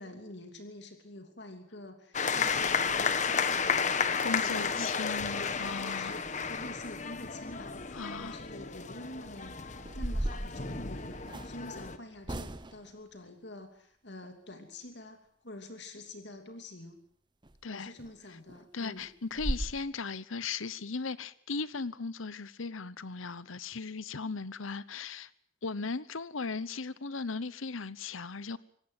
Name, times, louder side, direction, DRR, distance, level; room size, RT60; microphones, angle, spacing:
voice 1, 0.0-5.0 5.4-5.6 5.8-9.6 9.9-17.0 17.6-19.1, left 1 dB, 60° left, 3.0 m, -47 dB
sound 1, 2.1-12.0, left 5 dB, 35° left, 1.3 m, -32 dB
voice 2, 4.2-6.1 7.9-8.4 17.6-17.9 18.7-25.3 25.6-28.6, left 4 dB, 90° left, 1.0 m, -37 dB
sound 2, 8.9-9.2 9.8-11.6 12.2-12.9 17.4-17.6 18.0-18.1 18.5-18.6 19.0-19.1 19.4-19.7, right 1 dB, 20° right, 1.0 m, -35 dB
25.0 x 18.0 x 7.6 m
head